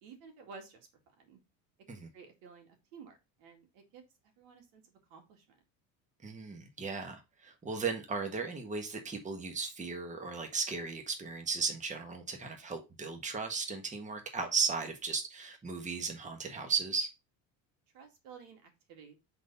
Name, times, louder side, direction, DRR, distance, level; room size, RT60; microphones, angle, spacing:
voice 1, 0.0-1.4 1.9-4.0 4.4-5.6 17.9-19.1, right 5 dB, 80° right, 2.3 m, -53 dB
voice 2, 6.2-17.1, right 5 dB, 20° right, 1.4 m, -36 dB
7.4 x 4.0 x 3.9 m
supercardioid pair, 115°, 40 cm